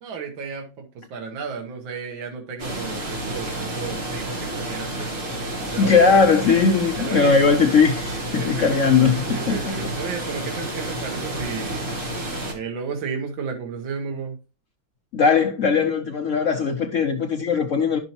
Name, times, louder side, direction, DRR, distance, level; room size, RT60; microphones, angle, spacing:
voice 1, 0.0-5.1 5.7-6.1 7.0-7.4 8.4-8.7 9.3-12.0 12.5-14.4, right 5 dB, 75° right, 1.9 m, -33 dB
sound 1, 2.6-12.5, right 1 dB, 40° right, 2.0 m, -30 dB
voice 2, 5.8-9.9 15.1-18.0, left 5 dB, 60° left, 0.8 m, -19 dB
10.5 x 6.1 x 2.9 m
omnidirectional pair, 2.1 m